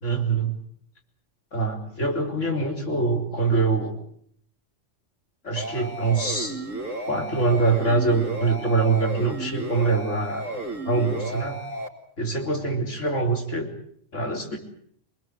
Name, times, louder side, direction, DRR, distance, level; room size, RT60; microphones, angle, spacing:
voice 1, 0.0-0.5 1.5-4.0 5.4-6.5 7.1-10.4 10.8-11.6 12.2-13.7 14.1-14.6, right 3 dB, 70° left, 2 dB, 4.3 m, -24 dB
sound 1, 5.6-11.9, right 2 dB, 80° right, 3.0 m, -33 dB
25.0 x 20.0 x 8.2 m, 0.62 s
omnidirectional pair, 1.3 m